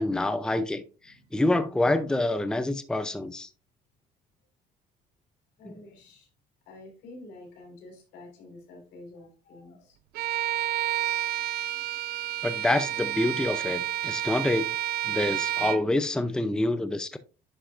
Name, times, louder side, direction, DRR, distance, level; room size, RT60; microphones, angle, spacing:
voice 1, 0.0-3.5 5.7-5.8 12.4-14.7 15.0-17.2, left 2 dB, 5° left, 0.5 m, -27 dB
voice 2, 1.0-1.4 5.6-6.3 6.6-10.0 12.4-12.5, left 2 dB, 90° left, 4.3 m, -48 dB
Bowed string instrument, 10.2-15.9, right 13 dB, 65° right, 0.5 m, -30 dB
10.0 x 5.7 x 2.6 m
cardioid pair, 110°, 17 cm